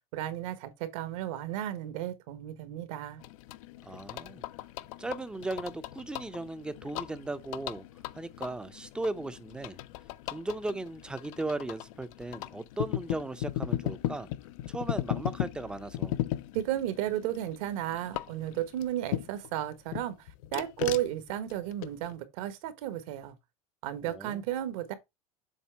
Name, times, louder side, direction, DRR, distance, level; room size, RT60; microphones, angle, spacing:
voice 1, 0.1-3.2 16.5-23.4 23.8-24.9, right 12 dB, 70° right, 1.3 m, -34 dB
sound 1, 3.2-19.5 19.9-22.1, left 14 dB, 75° left, 0.5 m, -37 dB
voice 2, 3.8-4.4 5.0-7.9 8.1-9.8 10.3-14.3 14.7-16.2 24.1-24.4, right 2 dB, 5° right, 0.5 m, -37 dB
7.3 x 3.3 x 4.5 m
supercardioid pair, 135°, 18 cm